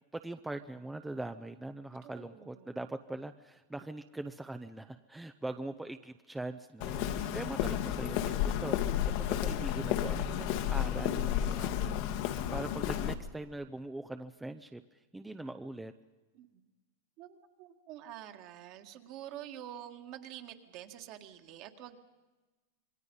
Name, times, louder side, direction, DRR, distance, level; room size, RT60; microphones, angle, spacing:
voice 1, 0.1-15.9, right 2 dB, 5° right, 8 dB, 0.6 m, -42 dB
voice 2, 2.0-2.8 6.8-7.7 16.3-16.6 17.2-22.0, right 11 dB, 45° right, 6 dB, 1.9 m, -48 dB
Walk footsteps, 6.8-13.1, left 10 dB, 55° left, 1.5 m, -32 dB
27.0 x 21.5 x 5.5 m, 1.2 s
supercardioid pair, 135°, 0 cm